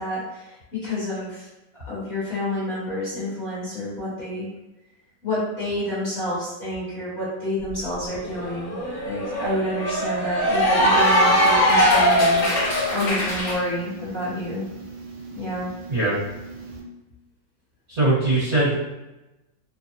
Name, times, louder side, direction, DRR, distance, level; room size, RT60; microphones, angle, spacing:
voice 1, 0.0-1.5 1.9-4.5 5.2-8.8 9.0-14.6 15.3-15.7, left 1 dB, 40° left, -11 dB, 1.3 m, -29 dB
Cheering / Applause, 7.7-7.8 8.1-13.6, equal, 60° left, 1.4 m, -20 dB
sound 1, 10.5-16.8, right 3 dB, 85° right, 1.3 m, -40 dB
voice 2, 17.9-18.7, right 2 dB, 45° right, -9 dB, 1.3 m, -21 dB
3.3 x 2.0 x 2.7 m, 0.97 s
omnidirectional pair, 1.9 m